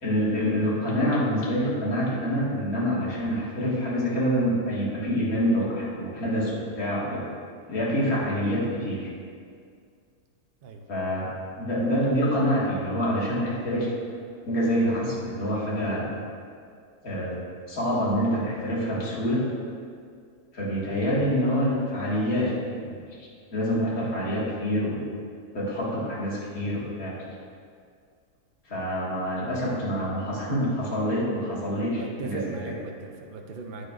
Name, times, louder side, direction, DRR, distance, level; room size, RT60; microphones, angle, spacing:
voice 1, 0.0-7.2 7.7-9.1 10.9-11.3 11.6-13.9 14.5-16.1 17.0-17.4 17.7-19.4 20.5-23.0 23.5-25.0 25.5-27.1 28.7-32.6, equal, 80° left, -6 dB, 2.4 m, -26 dB
voice 2, 32.0-33.9, right 4 dB, 50° right, 2 dB, 0.8 m, -37 dB
10.0 x 8.9 x 2.5 m, 2.2 s
omnidirectional pair, 1.5 m